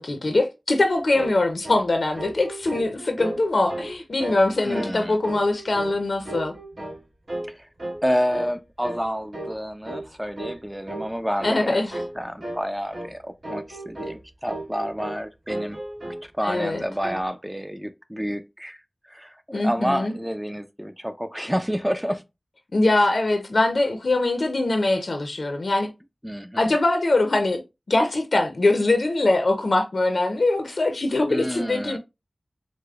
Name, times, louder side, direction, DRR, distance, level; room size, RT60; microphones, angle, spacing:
voice 1, 0.0-6.5 11.4-12.0 16.4-16.8 19.5-20.1 22.7-25.9 26.6-27.6 27.9-32.0, left 2 dB, 75° left, 0.5 m, -22 dB
sound 1, 1.1-1.4 1.6-1.9 2.1-3.4 3.7-3.9 4.2-4.4 4.7-5.0 5.2-6.0 6.2-7.0 7.3-7.5 7.8-8.0 8.3-8.5 8.8-9.0 9.3-9.6 9.8-10.1 10.4-10.6 10.9-11.1 11.4-11.6 11.9-12.2 12.4-12.6 12.9-13.1 13.4-14.2 14.5-15.2 15.5-16.2 16.5-17.2, right 1 dB, 60° right, 1.2 m, -34 dB
voice 2, 4.6-5.2 7.5-7.7 8.0-11.8 12.2-15.8 16.2-18.8 19.1-22.2 26.2-26.7 31.3-32.0, equal, 5° right, 0.3 m, -29 dB
4.8 x 2.0 x 2.3 m
wide cardioid pair, 50°, 0 cm